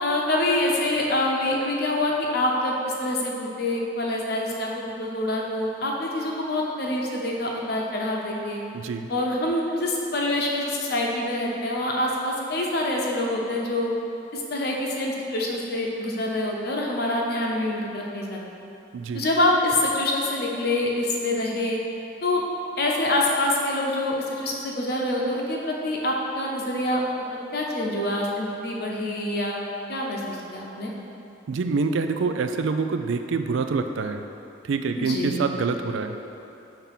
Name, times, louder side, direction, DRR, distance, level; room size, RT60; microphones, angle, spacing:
voice 1, 0.0-8.6 9.1-13.9 14.3-18.4 19.1-21.8 22.2-22.4 22.8-27.0 27.5-29.6 29.9-30.2 30.5-30.9 34.9-35.4, left 1 dB, 55° left, -1 dB, 0.8 m, -26 dB
voice 2, 8.7-9.1 18.9-19.2 31.5-34.2 34.6-36.1, right 4 dB, 75° right, 7 dB, 0.4 m, -26 dB
5.8 x 3.5 x 5.7 m, 2.9 s
head